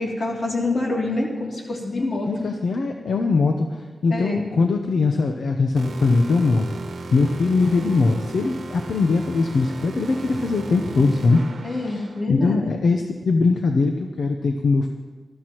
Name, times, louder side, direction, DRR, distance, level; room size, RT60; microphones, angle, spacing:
voice 1, 0.0-2.5 4.1-4.4 11.6-12.7, left 2 dB, 55° left, -2 dB, 2.7 m, -26 dB
voice 2, 2.3-6.7 7.1-14.9, left 3 dB, 75° left, 4 dB, 0.7 m, -21 dB
sound 1, 5.8-12.2, right 3 dB, 85° right, 1.0 m, -36 dB
20.0 x 13.0 x 3.0 m, 1.4 s
wide cardioid pair, 170°, 0 cm